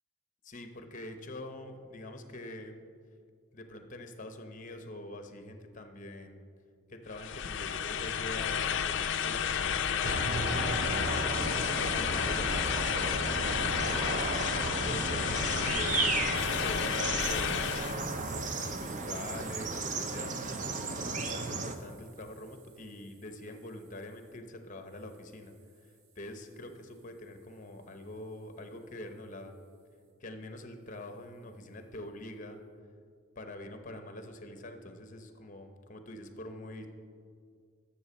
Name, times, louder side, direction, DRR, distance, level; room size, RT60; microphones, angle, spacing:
voice 1, 0.4-2.8 3.5-6.4 6.9-11.0 11.7-13.1 13.4-16.2 16.4-25.5 25.8-29.5 30.2-32.6 33.3-36.9, left 1 dB, 40° left, 7 dB, 0.8 m, -45 dB
sound 1, 7.1-18.0, left 8 dB, 60° left, 0.4 m, -31 dB
sound 2, 10.0-21.7, right 3 dB, 35° right, 0.6 m, -34 dB
sound 3, 16.3-24.4 24.9-29.1, right 6 dB, 75° right, 1.0 m, -55 dB
12.5 x 7.0 x 4.2 m, 2.2 s
head